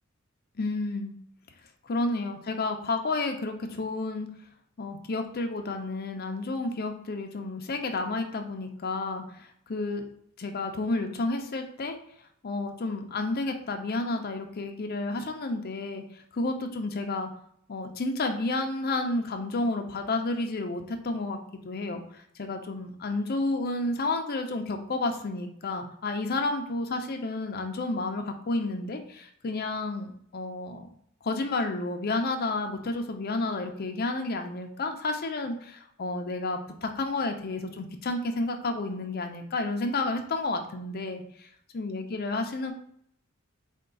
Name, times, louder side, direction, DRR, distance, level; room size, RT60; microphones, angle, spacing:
voice 1, 0.6-1.1 1.8-4.3 4.8-10.0 10.4-12.0 12.4-16.0 16.3-17.3 17.7-21.4 21.6-22.0 22.4-30.9 31.2-41.5 41.7-42.7, left 2 dB, 50° left, 5 dB, 0.5 m, -31 dB
4.4 x 2.3 x 3.7 m, 0.69 s
head